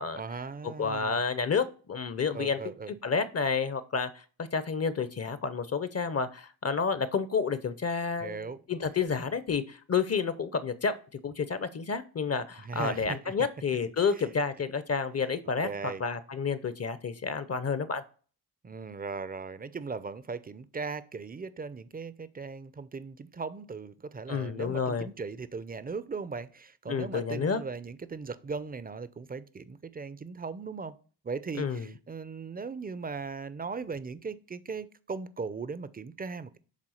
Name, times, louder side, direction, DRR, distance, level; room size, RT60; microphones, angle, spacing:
voice 1, 0.2-1.2 2.3-2.9 8.2-8.6 12.6-13.3 14.1-14.2 15.6-16.0 18.6-31.0 31.2-36.6, right 4 dB, 20° right, 0.5 m, -38 dB
voice 2, 0.8-2.6 3.0-4.2 4.5-10.9 11.2-18.0 24.3-25.1 26.9-27.6 31.6-31.9, left 5 dB, 35° left, 0.7 m, -30 dB
7.5 x 3.6 x 6.4 m
cardioid pair, 75°, 42 cm